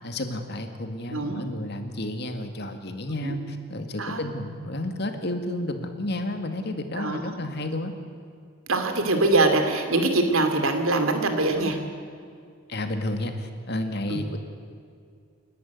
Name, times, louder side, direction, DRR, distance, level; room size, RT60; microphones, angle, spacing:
voice 1, 0.0-7.9 12.7-14.4, left 1 dB, 55° left, 6 dB, 2.0 m, -31 dB
voice 2, 1.1-1.4 3.2-3.4 4.0-4.2 7.0-7.4 8.7-11.8 14.1-14.2, right 2 dB, 90° right, 6 dB, 2.7 m, -23 dB
29.0 x 11.5 x 9.5 m, 2.2 s
head